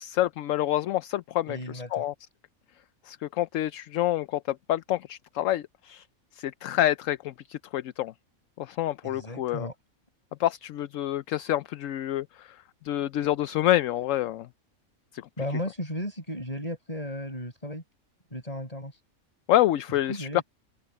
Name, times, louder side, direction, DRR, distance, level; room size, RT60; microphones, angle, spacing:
voice 1, 0.0-1.6 1.9-2.1 3.1-6.0 6.4-8.1 8.6-9.7 10.4-12.3 12.8-14.5 19.5-20.4, left 13 dB, 70° left, 0.9 m, -27 dB
voice 2, 1.5-2.1 9.0-9.7 15.4-17.8 18.3-19.0 20.1-20.4, left 1 dB, 25° left, 7.1 m, -35 dB
open air
omnidirectional pair, 1.5 m